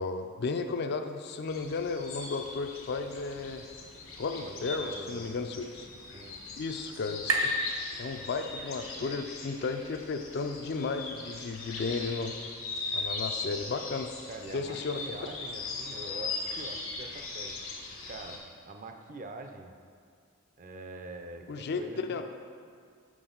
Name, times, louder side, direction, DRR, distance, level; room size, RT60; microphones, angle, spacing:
voice 1, 0.0-3.7 4.2-5.9 6.6-12.3 12.9-14.1 14.5-15.0 21.5-21.8 22.1-22.2, left 4 dB, 55° left, 7 dB, 0.4 m, -34 dB
sound 1, 1.5-18.4, left 3 dB, 80° left, 1.4 m, -40 dB
voice 2, 4.4-5.3 5.9-6.4 14.3-17.5 18.0-19.7 20.6-22.2, right 2 dB, 40° right, 5 dB, 0.5 m, -44 dB
sound 2, 5.0-8.7, right 2 dB, 85° right, 0.9 m, -36 dB
6.1 x 6.1 x 3.9 m, 2.2 s
head